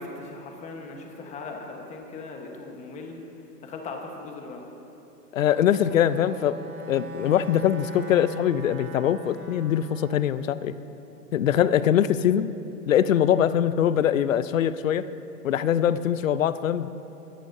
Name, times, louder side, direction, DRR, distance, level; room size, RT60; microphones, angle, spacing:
voice 1, 0.0-3.2 3.6-4.6, left 3 dB, 15° left, 2 dB, 1.3 m, -39 dB
voice 2, 5.3-6.6 6.9-10.7 11.3-12.5 12.9-15.1 15.4-16.9, left 10 dB, 55° left, 14 dB, 0.7 m, -22 dB
Bowed string instrument, 5.7-10.2, left 1 dB, 60° right, 2.0 m, -40 dB
23.0 x 17.5 x 2.7 m, 2.9 s
hypercardioid pair, 140°, 49 cm